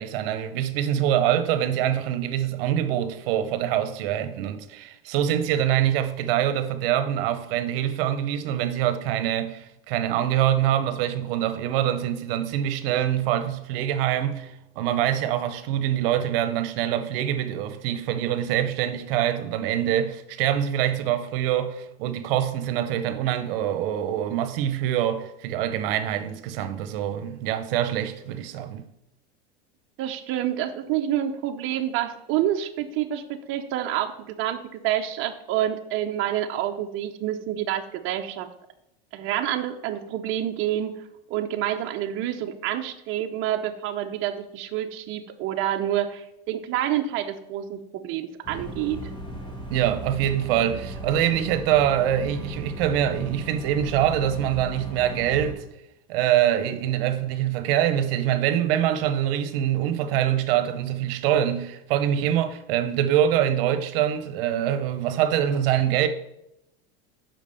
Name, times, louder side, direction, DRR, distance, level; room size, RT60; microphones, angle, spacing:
voice 1, 0.0-28.8 49.7-55.6 56.1-66.1, right 11 dB, 70° right, 0.9 m, -24 dB
voice 2, 30.0-38.5 39.1-41.0 41.3-49.1, right 11 dB, 45° right, 0.7 m, -28 dB
sound 1, 48.4-55.5, right 1 dB, 15° left, 1.4 m, -37 dB
5.8 x 5.2 x 6.8 m
supercardioid pair, 130°, 29 cm